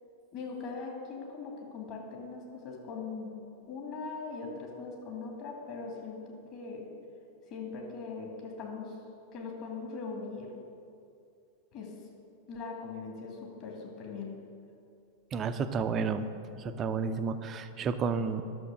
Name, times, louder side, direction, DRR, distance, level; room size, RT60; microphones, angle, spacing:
voice 1, 0.3-3.3 3.7-6.8 7.5-9.0 9.3-10.5 11.7-11.9 12.5-14.4, left 4 dB, 40° left, -1 dB, 2.5 m, -40 dB
voice 2, 15.3-16.3 16.6-18.4, right 5 dB, 30° right, 9 dB, 0.6 m, -31 dB
11.0 x 6.8 x 6.4 m, 2.5 s
figure-of-eight pair, 90°, 0 cm